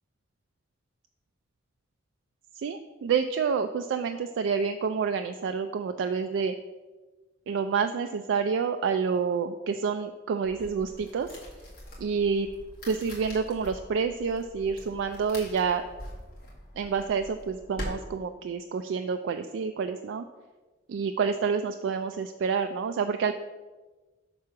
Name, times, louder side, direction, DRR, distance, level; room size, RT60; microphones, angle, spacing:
voice 1, 2.5-6.5 7.5-11.3 12.0-12.5 12.9-15.8 16.8-20.2 20.9-23.3, right 5 dB, 75° right, 7 dB, 0.3 m, -28 dB
sound 1, 10.4-17.9, equal, 55° left, 1.9 m, -44 dB
6.0 x 3.8 x 5.6 m, 1.2 s
head